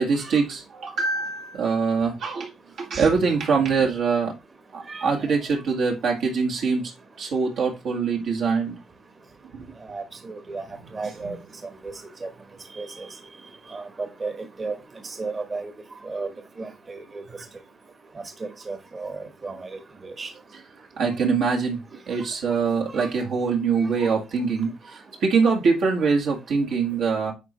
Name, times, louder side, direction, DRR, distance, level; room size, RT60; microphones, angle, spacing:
voice 1, 0.0-2.5 2.8-4.3 4.7-8.8 21.0-21.8 22.1-27.3, right 5 dB, 75° right, 1.8 m, -23 dB
voice 2, 9.9-10.6 10.9-11.4 12.2-12.3 12.8-13.1 13.7-14.3 14.6-14.8 15.0-15.7 16.1-16.3 16.6-17.0 18.7-19.7 20.2-20.3 23.0-23.1, right 3 dB, 35° right, 1.2 m, -33 dB
9.9 x 3.9 x 3.1 m
cardioid pair, 90°, 0 cm